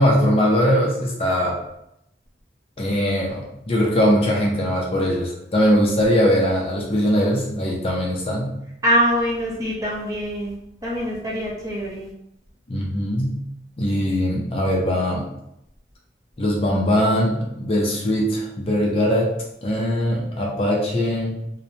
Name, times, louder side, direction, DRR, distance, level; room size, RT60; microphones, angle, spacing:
voice 1, 0.0-1.5 2.8-3.4 3.7-8.5 12.7-13.4 13.8-15.3 16.4-19.3 19.6-21.4, equal, 30° left, -2 dB, 0.4 m, -21 dB
voice 2, 8.8-10.5 10.8-12.1, equal, 20° right, -4 dB, 0.6 m, -23 dB
2.9 x 2.0 x 2.7 m, 0.80 s
head